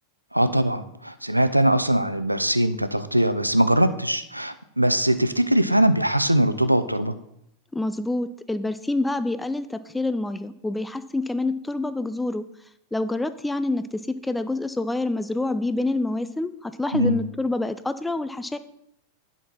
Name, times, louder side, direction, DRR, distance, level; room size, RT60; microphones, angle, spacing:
voice 1, 0.3-7.1 16.9-17.2, right 1 dB, 90° right, 12 dB, 0.6 m, -21 dB
voice 2, 7.7-12.5 12.9-18.6, left 2 dB, 5° left, 12 dB, 0.4 m, -27 dB
10.5 x 5.9 x 4.2 m, 0.78 s
figure-of-eight pair, 90°, 0 cm